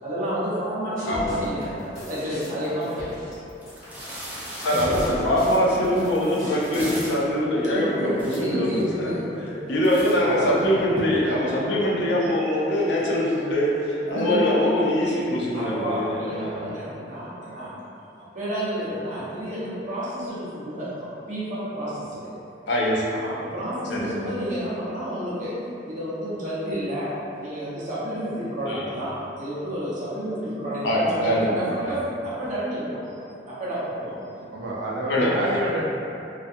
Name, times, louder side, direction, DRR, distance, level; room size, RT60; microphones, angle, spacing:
voice 1, 0.0-3.2 7.7-9.8 12.4-12.5 14.1-14.6 15.5-17.8 18.2-22.3 23.1-25.6 25.8-34.5, equal, 45° right, -10 dB, 0.7 m, -30 dB
voice 2, 1.0-1.6 4.6-9.1 9.7-16.7 22.7-23.0 23.9-24.1 28.7-28.9 30.8-31.5 31.8-31.9 35.1-35.5, left 1 dB, 75° left, -5 dB, 0.5 m, -23 dB
sound 1, 1.0-7.1, equal, 35° left, 1.1 m, -37 dB
sound 2, 3.1-3.2 3.6-7.3 7.9-8.0 8.1-8.9 9.3-9.6 9.8-11.0, right 1 dB, 10° right, 0.3 m, -39 dB
voice 3, 34.5-35.9, right 1 dB, 80° right, -2 dB, 0.4 m, -29 dB
2.4 x 2.1 x 2.6 m, 2.7 s
head